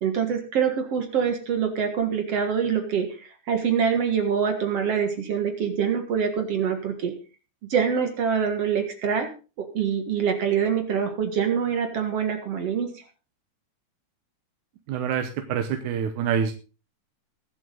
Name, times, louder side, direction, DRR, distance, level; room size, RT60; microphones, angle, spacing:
voice 1, 0.0-3.1 3.5-7.1 7.7-9.3 9.6-12.9, right 7 dB, 60° right, 6 dB, 2.6 m, -25 dB
voice 2, 14.9-16.5, right 8 dB, 90° right, 6 dB, 2.5 m, -26 dB
22.0 x 7.8 x 3.9 m, 0.34 s
omnidirectional pair, 3.4 m